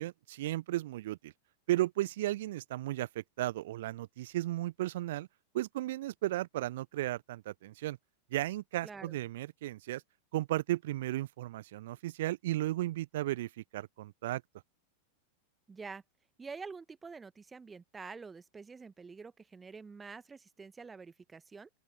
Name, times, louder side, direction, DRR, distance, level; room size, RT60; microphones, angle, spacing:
voice 1, 0.0-1.3 1.7-5.3 5.5-8.0 8.3-10.0 10.3-14.4, right 15 dB, 55° right, 0.3 m, -35 dB
voice 2, 8.8-9.2 15.7-16.0 16.4-21.7, right 4 dB, 15° right, 1.2 m, -47 dB
open air
figure-of-eight pair, 90°, 0 cm